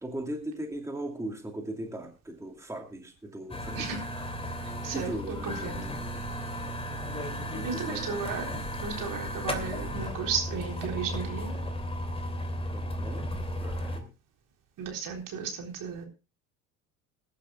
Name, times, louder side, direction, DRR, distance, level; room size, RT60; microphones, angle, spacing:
voice 1, 0.0-4.2 4.6-6.1 7.5-8.3 12.7-14.1, right 1 dB, 5° right, 3 dB, 2.5 m, -39 dB
sound 1, 3.5-14.0, equal, 15° left, 3.0 m, -35 dB
voice 2, 4.6-5.8 7.6-8.4 8.8-11.6 14.8-16.1, right 6 dB, 50° right, 2 dB, 3.9 m, -34 dB
21.5 x 11.5 x 2.3 m, 0.30 s
hypercardioid pair, 70°, 42 cm